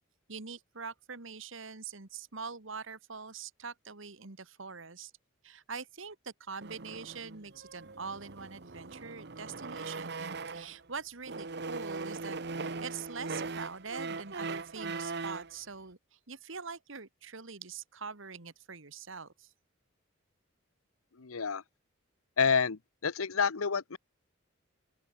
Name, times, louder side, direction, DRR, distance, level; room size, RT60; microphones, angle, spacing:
voice 1, 0.3-5.1 5.4-19.5, right 5 dB, 70° right, 1.7 m, -44 dB
sound 1, 6.6-10.8 11.2-15.5, right 4 dB, 50° right, 1.0 m, -40 dB
voice 2, 21.2-21.6 22.4-24.0, left 6 dB, 85° left, 0.9 m, -29 dB
open air
head